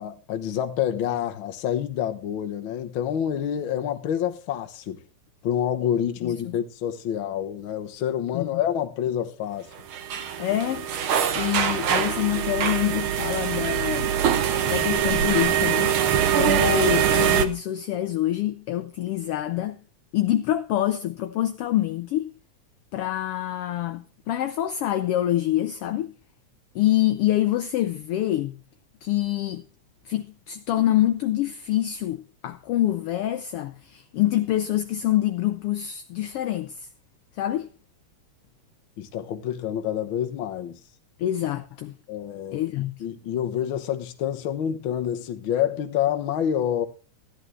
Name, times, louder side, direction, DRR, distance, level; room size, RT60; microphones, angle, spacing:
voice 1, 0.0-5.0 5.4-9.7 10.5-10.6 39.0-40.8 42.1-42.7 43.0-46.8, left 9 dB, 60° left, 1.5 m, -27 dB
voice 2, 6.2-6.5 8.3-8.6 10.4-10.9 11.3-14.1 14.6-15.9 16.3-19.8 20.1-22.3 22.9-26.1 26.7-28.6 29.0-29.6 30.0-36.9 37.4-37.7 41.2-42.0 42.5-43.0, left 13 dB, 80° left, 1.3 m, -26 dB
sound 1, 9.9-17.5, right 9 dB, 65° right, 1.4 m, -23 dB
14.0 x 11.0 x 3.2 m
omnidirectional pair, 3.3 m